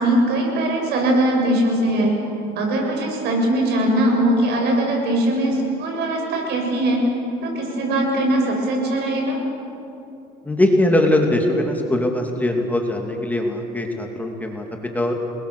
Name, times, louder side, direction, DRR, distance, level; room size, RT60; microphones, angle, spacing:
voice 1, 0.0-2.1 2.6-7.0 7.4-9.4, right 1 dB, 70° right, 1 dB, 7.0 m, -20 dB
voice 2, 10.4-14.6 14.9-15.2, left 1 dB, 10° left, 2 dB, 2.4 m, -21 dB
29.5 x 21.5 x 6.8 m, 2.9 s
cardioid pair, 125°, 18 cm